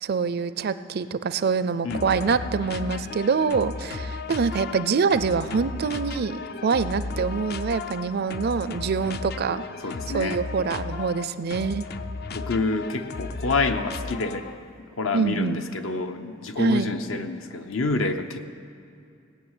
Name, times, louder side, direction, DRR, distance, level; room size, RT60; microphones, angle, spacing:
voice 1, 0.0-9.6 10.1-11.8 15.1-15.6 16.6-16.9, right 5 dB, 50° right, 14 dB, 0.4 m, -25 dB
voice 2, 1.8-2.2 9.8-10.4 12.3-14.4 15.0-18.4, left 3 dB, 75° left, 7 dB, 0.8 m, -28 dB
sound 1, 1.9-14.7, left 4 dB, 50° left, 0.5 m, -35 dB
17.0 x 6.5 x 9.0 m, 2.6 s
head